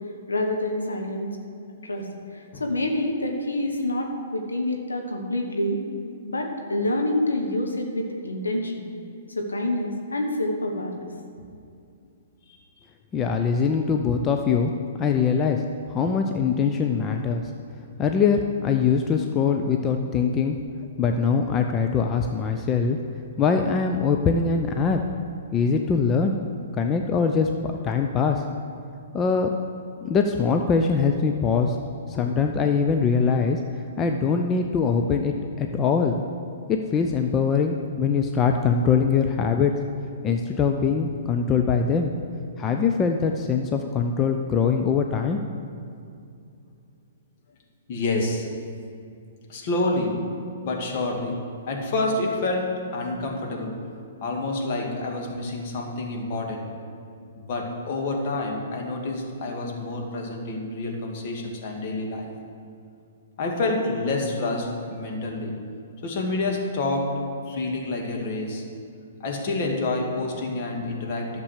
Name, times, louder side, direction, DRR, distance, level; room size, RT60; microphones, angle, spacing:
voice 1, 0.3-1.3 1.8-5.8 6.2-8.9 9.3-11.0, left 1 dB, 85° left, 2 dB, 1.4 m, -27 dB
voice 2, 13.1-14.7 15.0-15.6 15.9-17.5 18.0-20.6 21.0-23.0 23.4-25.0 25.5-26.4 26.7-28.4 29.1-29.5 30.0-31.8 32.1-36.2 36.7-39.7 40.2-42.1 42.6-45.4, left 5 dB, 25° left, 4 dB, 0.6 m, -22 dB
voice 3, 47.9-48.5 49.5-53.9 54.2-56.7 57.4-62.3 63.4-65.6 66.0-68.6 69.2-71.4, left 2 dB, 45° left, 1 dB, 2.1 m, -28 dB
11.5 x 6.8 x 6.6 m, 2.4 s
figure-of-eight pair, 120°, 0 cm